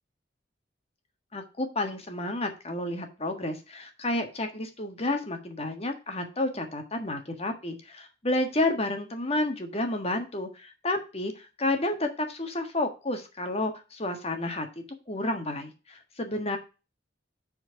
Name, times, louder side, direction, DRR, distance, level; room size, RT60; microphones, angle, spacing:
voice 1, 1.3-14.7 15.1-16.6, left 1 dB, 35° left, 5 dB, 1.5 m, -30 dB
7.8 x 4.5 x 5.7 m, 0.30 s
head